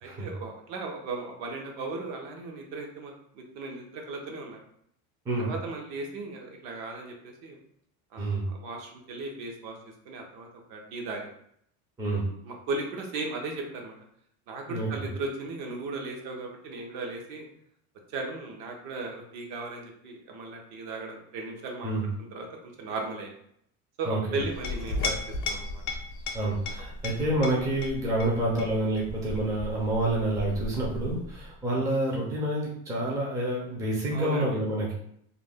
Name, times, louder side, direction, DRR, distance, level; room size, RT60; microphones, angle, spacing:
voice 1, 0.0-4.6 5.4-7.6 8.1-9.8 10.1-11.3 12.4-13.9 14.5-17.5 18.1-21.9 22.3-22.5 22.8-23.3 24.0-25.1 25.4-25.8 34.1-34.5, right 3 dB, 65° right, 1 dB, 0.7 m, -36 dB
voice 2, 8.2-8.5 12.0-12.2 14.7-14.9 21.8-22.1 24.0-24.4 26.3-34.9, right 1 dB, 10° right, -4 dB, 0.4 m, -28 dB
Chink clink, 24.4-31.5, left 3 dB, 45° left, 0.5 m, -36 dB
2.5 x 2.1 x 3.3 m, 0.69 s
cardioid pair, 155°, 40 cm